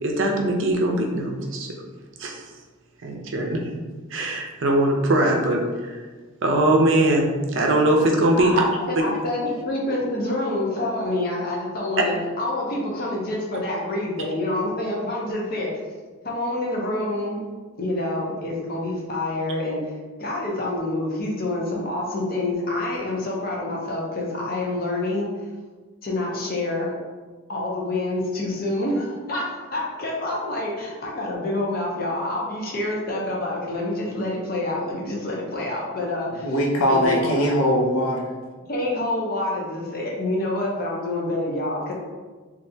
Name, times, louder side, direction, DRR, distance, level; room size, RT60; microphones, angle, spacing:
voice 1, 0.0-1.7 2.2-2.4 3.0-3.6 4.1-6.0 6.4-8.7 9.0-9.1, right 1 dB, 65° right, 1 dB, 0.5 m, -21 dB
voice 2, 8.4-15.7 16.2-17.4 17.7-19.9 20.2-25.3 26.0-27.0 27.5-36.4 36.9-37.3 38.7-41.9, left 2 dB, 45° left, -3 dB, 0.7 m, -27 dB
voice 3, 36.4-38.4, equal, 85° left, -2 dB, 0.7 m, -21 dB
3.2 x 2.6 x 2.7 m, 1.4 s
head